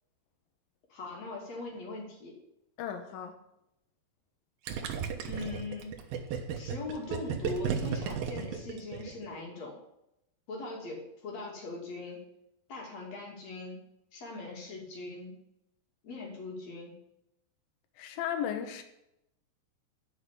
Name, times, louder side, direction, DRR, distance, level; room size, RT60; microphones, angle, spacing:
voice 1, 0.9-2.4 5.2-6.0 6.5-9.8 10.5-12.2 12.7-13.8 14.1-15.4 16.0-17.0, left 3 dB, 45° left, -1 dB, 3.7 m, -41 dB
voice 2, 2.8-3.4 18.0-18.8, left 9 dB, 70° left, 7 dB, 2.8 m, -35 dB
Gurgling, 4.7-9.4, right 7 dB, 70° right, 2.8 m, -34 dB
12.0 x 5.9 x 8.5 m, 0.83 s
omnidirectional pair, 4.8 m